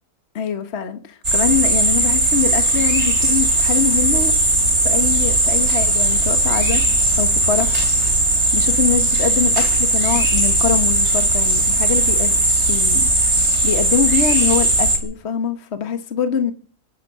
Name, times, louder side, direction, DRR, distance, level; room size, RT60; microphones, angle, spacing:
voice 1, 0.3-4.3 4.8-6.8 7.2-7.8 8.5-12.4 12.7-13.1 13.6-16.5, left 7 dB, 45° left, 8 dB, 1.5 m, -23 dB
sound 1, 1.2-15.0, right 2 dB, 45° right, 3.5 m, -17 dB
22.0 x 10.5 x 6.4 m, 0.43 s
omnidirectional pair, 1.7 m